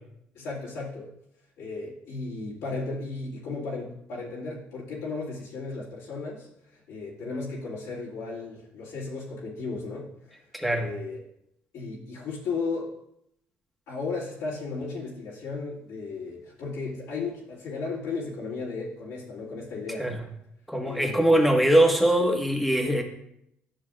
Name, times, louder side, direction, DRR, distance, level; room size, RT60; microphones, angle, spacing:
voice 1, 0.3-1.1 1.6-10.4 10.7-11.2 11.7-12.9 13.9-20.1 20.8-21.2, left 4 dB, 85° left, -7 dB, 2.2 m, -35 dB
voice 2, 10.5-10.9 20.0-20.2 20.7-23.0, right 1 dB, ahead, 1 dB, 1.5 m, -22 dB
10.5 x 6.1 x 2.5 m, 0.76 s
supercardioid pair, 80°, 5 cm